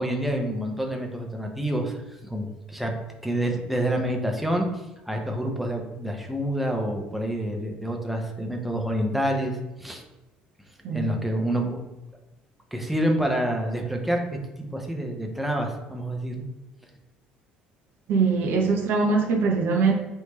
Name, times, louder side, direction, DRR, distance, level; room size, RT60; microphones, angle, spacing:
voice 1, 0.0-2.9 3.2-10.0 10.9-11.8 12.7-14.2 14.6-16.4, right 1 dB, 5° right, 1 dB, 0.8 m, -28 dB
voice 2, 10.8-11.2 18.1-19.9, right 4 dB, 50° right, 2 dB, 0.6 m, -22 dB
3.5 x 2.9 x 4.2 m, 1.0 s
figure-of-eight pair, 55°, 4 cm